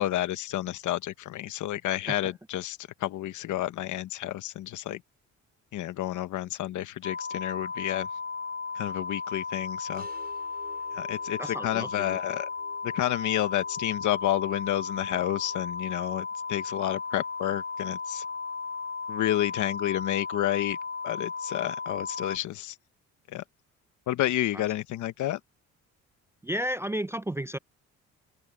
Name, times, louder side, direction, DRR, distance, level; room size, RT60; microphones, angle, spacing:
voice 1, 0.0-5.0 5.7-8.1 8.7-10.1 10.9-12.5 12.8-18.2 19.1-20.8 21.0-22.7 23.3-23.4 24.1-25.4, left 13 dB, 80° left, 1.1 m, -30 dB
sound 1, 7.0-22.4, left 4 dB, 35° left, 0.7 m, -35 dB
sound 2, 9.9-15.7, right 4 dB, 30° right, 5.9 m, -54 dB
voice 2, 11.4-12.2 24.5-24.6 26.4-27.6, equal, 10° right, 0.4 m, -33 dB
open air
cardioid pair, 90°, 30 cm